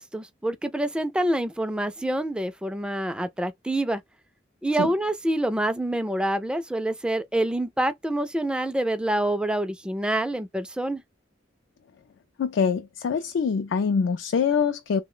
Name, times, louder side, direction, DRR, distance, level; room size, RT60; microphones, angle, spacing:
voice 1, 0.0-4.0 4.6-11.0, right 1 dB, 5° right, 0.3 m, -26 dB
voice 2, 12.4-15.0, left 6 dB, 80° left, 0.4 m, -24 dB
3.1 x 2.1 x 3.7 m
head